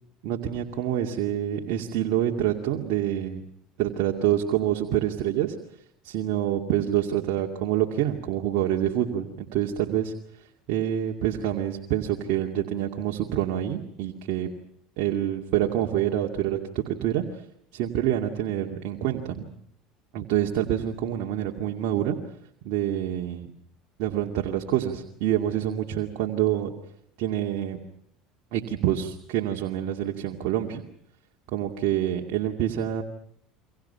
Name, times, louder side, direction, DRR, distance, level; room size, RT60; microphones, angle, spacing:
voice 1, 0.2-3.4 3.8-5.5 6.0-10.1 10.7-14.5 15.0-17.4 17.7-19.5 20.1-22.2 22.6-23.5 24.0-26.7 27.2-27.8 28.5-30.8 31.5-33.0, right 11 dB, 65° right, 1 dB, 2.3 m, -27 dB
29.5 x 25.0 x 5.8 m, 0.68 s
hypercardioid pair, 90°, 0 cm